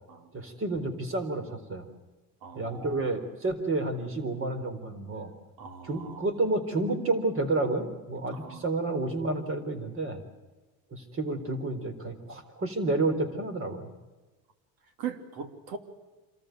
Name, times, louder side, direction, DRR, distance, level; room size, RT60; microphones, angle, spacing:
voice 1, 0.3-1.8 2.5-5.3 5.8-10.2 10.9-13.9, right 2 dB, 35° right, 9 dB, 4.0 m, -30 dB
voice 2, 2.4-3.1 5.6-6.3 8.3-8.7 15.0-15.8, right 7 dB, 60° right, 8 dB, 3.0 m, -40 dB
27.0 x 14.0 x 9.3 m, 1.2 s
supercardioid pair, 110°, 39 cm